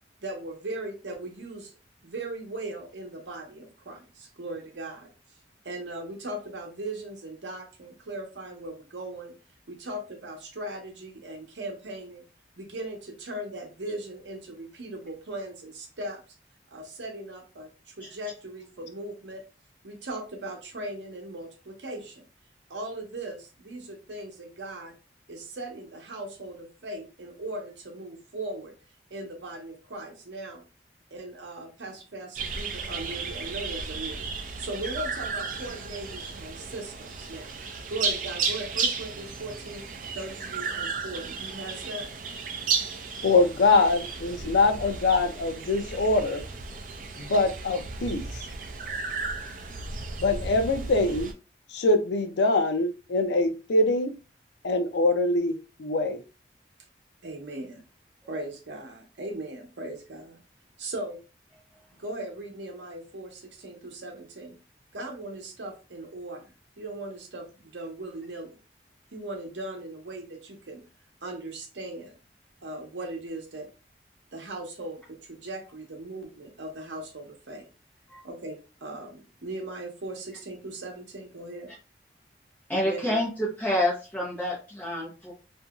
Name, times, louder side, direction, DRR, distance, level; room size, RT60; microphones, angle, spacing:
voice 1, 0.2-1.7 2.0-5.1 5.6-9.3 9.7-12.2 12.6-16.2 16.7-19.4 19.8-22.2 22.7-24.9 25.3-28.7 29.1-30.6 31.1-34.3 34.6-37.5 37.9-39.9 40.1-42.1 57.2-57.8 58.3-60.4 60.8-61.2 62.0-64.6 64.9-66.4 66.8-68.6 69.1-70.8 71.2-72.2 72.6-73.7 74.3-77.7 78.2-81.7 82.8-83.2, right 2 dB, 85° right, 0.8 m, -38 dB
sound 1, 32.3-51.3, right 4 dB, 45° right, 0.4 m, -34 dB
voice 2, 43.2-46.4 47.2-48.2 50.2-51.3 51.7-54.1 54.6-56.2, left 2 dB, 80° left, 0.4 m, -23 dB
voice 3, 82.7-85.3, left 1 dB, 10° left, 0.7 m, -28 dB
2.8 x 2.6 x 2.3 m
head